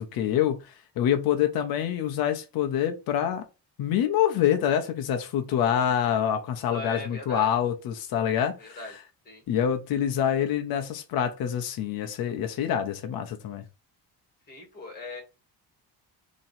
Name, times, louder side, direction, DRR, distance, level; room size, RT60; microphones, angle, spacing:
voice 1, 0.0-3.4 3.8-8.8 9.5-13.6, left 9 dB, 55° left, 0.7 m, -26 dB
voice 2, 6.7-7.5 8.6-8.9 9.2-9.4 14.5-15.2, left 2 dB, 20° left, 1.7 m, -39 dB
3.0 x 2.7 x 4.0 m
cardioid pair, 175°, 43 cm